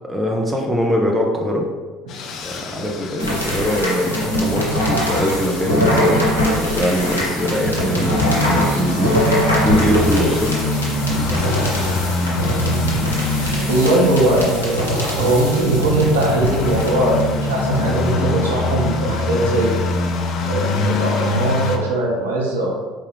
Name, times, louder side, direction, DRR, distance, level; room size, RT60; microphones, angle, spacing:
voice 1, 0.1-1.7 2.4-10.5, equal, 10° right, -1 dB, 0.6 m, -22 dB
sound 1, 2.1-21.8, left 3 dB, 50° left, 0.3 m, -25 dB
sound 2, 3.2-19.1, equal, 85° left, 0.7 m, -22 dB
voice 2, 13.7-20.0 20.5-22.7, right 1 dB, 75° right, -4 dB, 0.7 m, -20 dB
4.5 x 2.3 x 3.3 m, 1.4 s
figure-of-eight pair, 60°, 0 cm